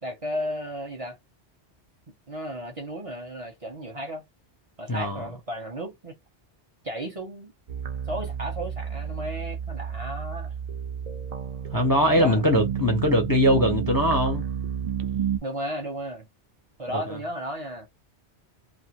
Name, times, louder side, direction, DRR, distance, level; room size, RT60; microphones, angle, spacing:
voice 1, 0.0-1.2 2.1-4.2 4.8-6.1 6.8-7.5 8.1-10.5 12.1-12.4 15.4-16.3 16.8-17.9, equal, 35° right, 0.8 m, -34 dB
voice 2, 4.9-5.2 11.7-14.4 16.9-17.2, equal, 25° left, 0.6 m, -22 dB
sound 1, 7.7-15.4, right 8 dB, 60° right, 0.4 m, -31 dB
2.5 x 2.2 x 2.9 m
omnidirectional pair, 1.2 m